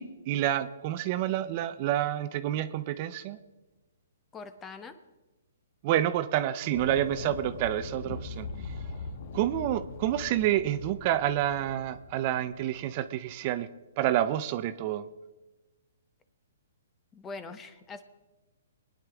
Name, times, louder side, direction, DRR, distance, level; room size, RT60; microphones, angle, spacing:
voice 1, 0.0-3.4 5.8-8.7 9.3-13.7 14.0-15.1, right 12 dB, 40° right, 12 dB, 0.6 m, -28 dB
voice 2, 4.3-5.0 17.1-18.0, left 4 dB, 15° left, 10 dB, 0.8 m, -42 dB
sound 1, 6.7-12.9, left 4 dB, 55° left, 1.2 m, -41 dB
23.0 x 9.9 x 3.5 m, 1.2 s
hypercardioid pair, 145°, 0 cm